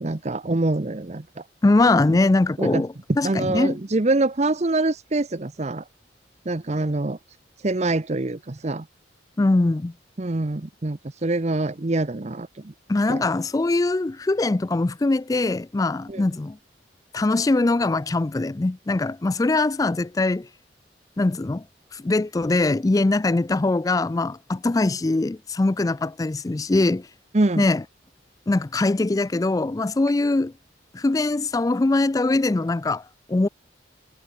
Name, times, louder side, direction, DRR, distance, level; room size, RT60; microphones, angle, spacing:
voice 1, 0.0-1.4 2.1-2.2 2.6-2.8 3.2-5.8 6.5-7.2 7.6-8.9 10.2-12.7 13.1-13.2 16.1-16.2 27.3-27.7, right 2 dB, 40° right, 0.8 m, -25 dB
voice 2, 1.6-3.8 9.4-9.9 12.9-16.6 17.1-20.5 21.2-21.6 21.9-27.1 27.6-27.8 28.5-30.5 30.9-33.0 33.3-33.5, left 2 dB, 20° left, 0.3 m, -22 dB
head